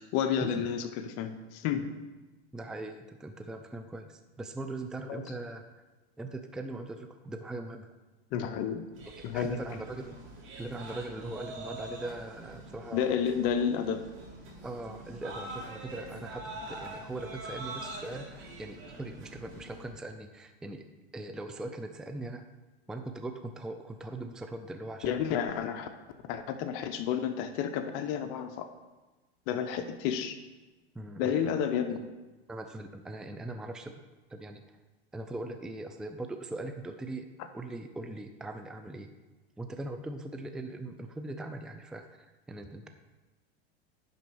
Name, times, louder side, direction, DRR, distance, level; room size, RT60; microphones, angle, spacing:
voice 1, 0.0-1.9 5.1-5.2 8.3-8.9 9.2-9.6 12.9-14.0 25.0-25.9 26.3-28.7 29.5-30.4 31.2-32.0, left 8 dB, 50° left, 8 dB, 0.8 m, -31 dB
voice 2, 2.5-5.6 6.2-7.9 9.3-10.2 10.5-13.2 14.6-20.8 21.1-22.4 22.9-25.2 30.9-31.5 32.5-33.9 34.3-34.6 35.1-37.3 37.5-39.1 39.6-42.9, right 2 dB, ahead, 6 dB, 0.4 m, -40 dB
sound 1, 8.9-19.9, right 2 dB, 40° right, 2.7 m, -44 dB
10.5 x 4.0 x 6.2 m, 1.2 s
supercardioid pair, 120°, 31 cm